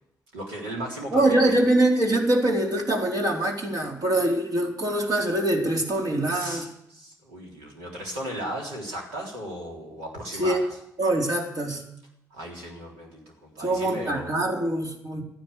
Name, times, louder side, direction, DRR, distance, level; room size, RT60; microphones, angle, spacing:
voice 1, 0.3-1.6 6.3-10.7 12.3-14.3, equal, 85° right, -1 dB, 3.7 m, -36 dB
voice 2, 1.1-6.7 10.4-10.6 11.0-11.8 13.6-15.2, right 1 dB, 55° right, 0 dB, 3.9 m, -23 dB
14.0 x 10.5 x 8.3 m, 0.78 s
hypercardioid pair, 40°, 8 cm